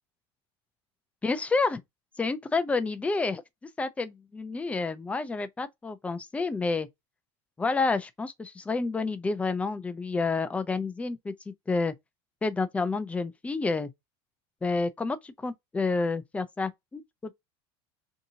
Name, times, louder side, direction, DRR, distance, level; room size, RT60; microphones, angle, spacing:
voice 1, 1.2-1.8 2.2-3.4 3.8-6.9 7.6-11.9 12.4-13.9 14.6-17.3, left 3 dB, 10° left, 0.3 m, -29 dB
2.8 x 2.6 x 2.6 m
supercardioid pair, 125°, 14 cm